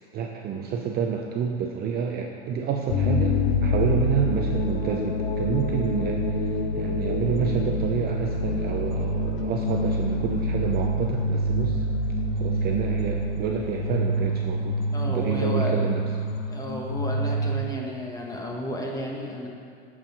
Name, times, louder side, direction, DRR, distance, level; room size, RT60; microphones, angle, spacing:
voice 1, 0.1-6.3 6.7-11.9 12.4-14.8 15.1-16.0, right 7 dB, 30° right, 1 dB, 0.6 m, -29 dB
sound 1, 2.9-17.6, equal, 60° left, 1.0 m, -26 dB
voice 2, 14.9-15.9 16.5-19.5, equal, 10° left, -1 dB, 1.3 m, -32 dB
9.5 x 4.9 x 5.3 m, 2.2 s
hypercardioid pair, 110°, 33 cm